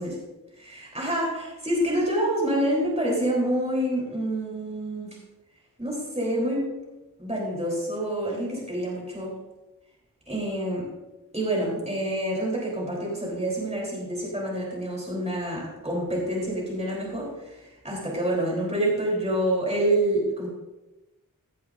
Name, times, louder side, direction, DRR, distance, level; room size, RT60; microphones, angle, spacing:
voice 1, 0.6-5.2 5.8-6.8 7.2-9.4 10.3-10.9 11.3-20.5, right 1 dB, 20° right, -4 dB, 3.7 m, -27 dB
16.0 x 10.5 x 2.6 m, 1.1 s
wide cardioid pair, 55°, 34 cm